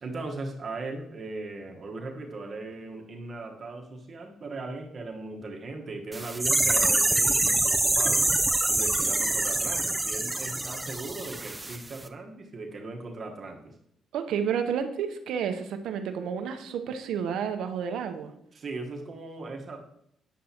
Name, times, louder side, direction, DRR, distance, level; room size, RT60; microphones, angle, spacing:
voice 1, 0.0-8.3 8.7-13.7 18.5-19.8, right 3 dB, 45° right, 2 dB, 1.2 m, -38 dB
sound 1, 6.1-11.8 12.0-12.1, right 2 dB, 15° right, 0.5 m, -25 dB
voice 2, 14.1-18.3, right 7 dB, 80° right, 7 dB, 0.8 m, -30 dB
9.2 x 7.8 x 2.9 m, 0.76 s
cardioid pair, 90°, 0 cm